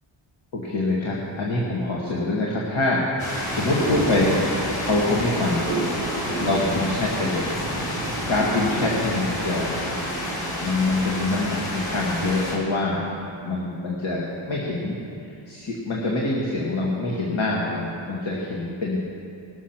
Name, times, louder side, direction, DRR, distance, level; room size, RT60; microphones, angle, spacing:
voice 1, 0.5-4.5 4.8-5.7 6.4-7.5 8.3-9.8 10.6-13.0 13.4-15.0 15.2-19.0, left 2 dB, 70° left, -4 dB, 2.0 m, -25 dB
sound 1, 3.2-12.5, equal, 85° left, 3.7 m, -28 dB
20.0 x 7.3 x 5.9 m, 2.5 s
wide cardioid pair, 165°, 48 cm